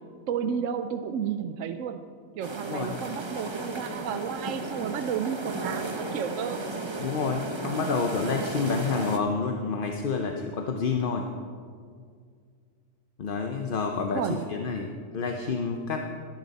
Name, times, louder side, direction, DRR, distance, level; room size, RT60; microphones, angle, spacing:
voice 1, 0.3-2.0 2.3-6.6 14.1-14.4, right 8 dB, 75° right, 8 dB, 1.0 m, -32 dB
sound 1, 2.4-9.2, right 3 dB, 25° right, 0.8 m, -34 dB
voice 2, 2.7-3.0 7.0-11.3 13.2-16.0, left 5 dB, 45° left, 3 dB, 0.8 m, -29 dB
20.0 x 10.5 x 4.1 m, 2.1 s
omnidirectional pair, 1.4 m